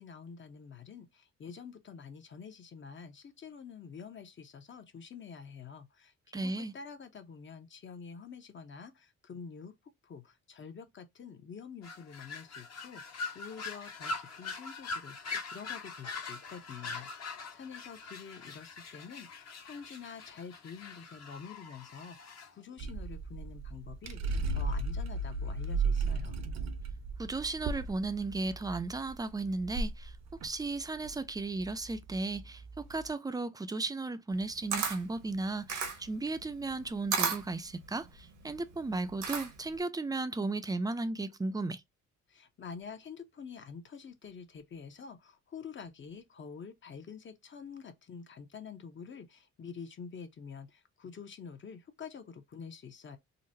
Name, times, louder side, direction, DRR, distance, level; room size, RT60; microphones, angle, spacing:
voice 1, 0.0-9.7 10.0-26.4 42.3-53.2, left 6 dB, 40° left, 0.8 m, -47 dB
voice 2, 6.3-6.7 27.2-30.1 30.4-38.1 38.4-41.8, right 3 dB, 15° right, 0.5 m, -35 dB
sound 1, 11.8-22.5, left 4 dB, 55° left, 1.3 m, -42 dB
sound 2, 22.8-33.1, right 3 dB, 60° right, 0.7 m, -36 dB
Camera, 34.3-39.8, right 6 dB, 85° right, 1.3 m, -35 dB
3.9 x 2.1 x 2.6 m
cardioid pair, 90°, 30 cm